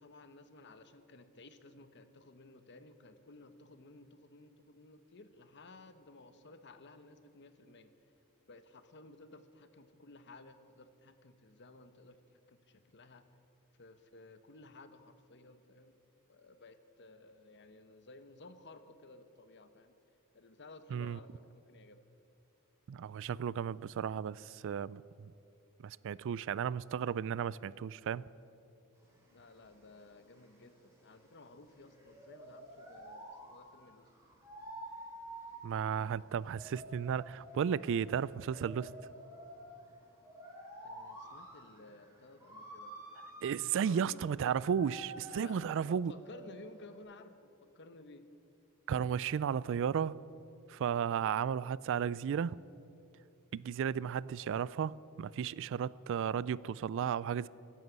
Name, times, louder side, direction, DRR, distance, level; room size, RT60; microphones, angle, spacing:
voice 1, 0.0-7.9 8.5-12.2 12.5-13.2 13.8-16.0 16.3-19.9 20.3-22.0 29.3-34.0 40.8-42.9 43.8-44.4 45.3-48.3, left 2 dB, 55° left, 1.0 m, -55 dB
voice 2, 22.9-25.0 25.8-28.2 35.6-38.9 43.4-46.1 48.9-50.2 50.7-52.6 53.5-57.5, right 7 dB, 60° right, 0.3 m, -34 dB
sound 1, 29.0-47.0, right 1 dB, 15° right, 4.0 m, -51 dB
15.5 x 10.5 x 8.0 m
head